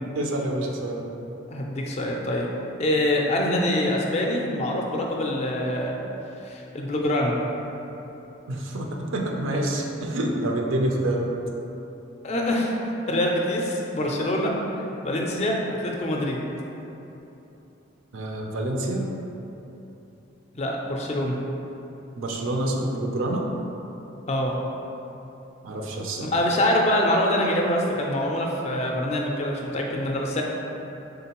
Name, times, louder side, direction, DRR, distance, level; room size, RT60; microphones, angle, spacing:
voice 1, 0.1-1.0 8.5-11.3 18.1-19.1 22.2-23.5 25.6-26.3, right 1 dB, 75° right, 0 dB, 0.5 m, -27 dB
voice 2, 1.5-2.5 2.8-6.0 6.4-7.4 12.2-14.5 14.8-16.4 20.6-21.4 24.3-24.6 26.2-30.4, left 1 dB, 30° left, -1 dB, 0.3 m, -25 dB
3.8 x 3.6 x 2.9 m, 3.0 s
head